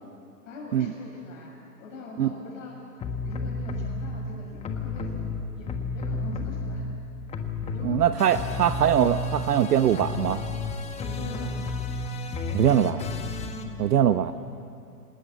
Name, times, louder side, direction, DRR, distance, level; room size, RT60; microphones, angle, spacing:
voice 1, 0.5-2.8 3.2-5.7 5.9-6.9 7.7-8.8 11.0-11.6 13.5-13.7, left 2 dB, 55° left, -1 dB, 7.0 m, -42 dB
sound 1, 3.0-4.1 4.6-7.0 7.3-13.6, left 3 dB, 15° left, 1.4 m, -32 dB
voice 2, 7.8-10.4 12.5-13.0 13.8-14.3, right 10 dB, 75° right, 11 dB, 0.9 m, -22 dB
28.0 x 19.5 x 8.5 m, 2.5 s
hypercardioid pair, 130°, 47 cm